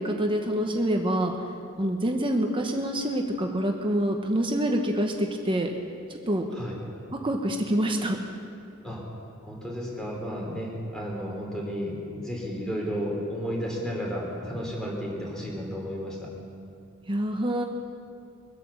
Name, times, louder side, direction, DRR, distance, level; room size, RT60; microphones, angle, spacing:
voice 1, 0.0-1.3 1.8-5.7 6.3-6.4 7.2-8.2 17.1-17.6, right 1 dB, 25° right, 2 dB, 1.1 m, -26 dB
voice 2, 9.4-16.3, equal, 5° left, -3 dB, 3.2 m, -33 dB
23.0 x 8.4 x 7.2 m, 2.5 s
head